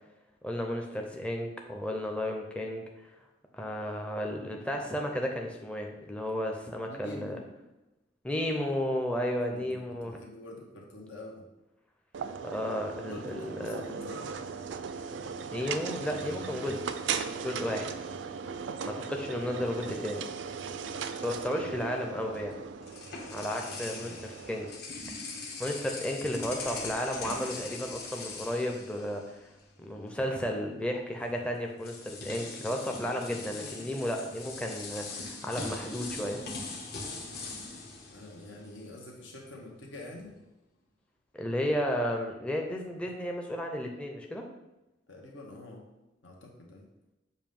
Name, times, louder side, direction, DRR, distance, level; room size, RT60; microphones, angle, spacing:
voice 1, 0.4-2.9 3.5-7.4 8.2-10.2 12.4-13.8 15.5-16.8 17.4-17.9 18.9-20.3 21.2-22.6 23.3-24.1 24.5-24.7 25.6-29.4 29.8-36.5 41.4-44.5, equal, 5° left, 1 dB, 0.5 m, -33 dB
voice 2, 6.8-7.5 9.3-11.5 13.0-14.2 23.4-24.2 38.1-40.4 45.1-45.9 46.2-46.9, left 1 dB, 85° left, 0 dB, 1.3 m, -47 dB
sound 1, 12.1-24.8, right 6 dB, 70° right, 0.4 m, -38 dB
sound 2, 22.4-29.6 29.9-30.1 31.2-31.3 31.8-38.9, left 3 dB, 55° left, 1.1 m, -41 dB
7.1 x 2.7 x 5.3 m, 0.98 s
head